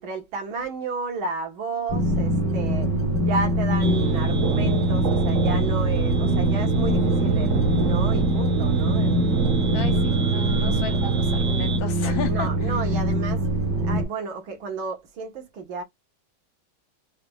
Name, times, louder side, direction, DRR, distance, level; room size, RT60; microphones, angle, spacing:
voice 1, 0.0-2.9 3.2-9.1 12.2-13.5 13.8-15.8, right 4 dB, 80° right, 2.0 m, -32 dB
sound 1, 1.9-14.0, right 1 dB, 35° right, 2.2 m, -23 dB
sound 2, 3.8-11.8, right 5 dB, 55° right, 0.9 m, -26 dB
voice 2, 9.7-12.7, left 7 dB, 75° left, 2.0 m, -34 dB
4.8 x 3.4 x 2.2 m
omnidirectional pair, 2.2 m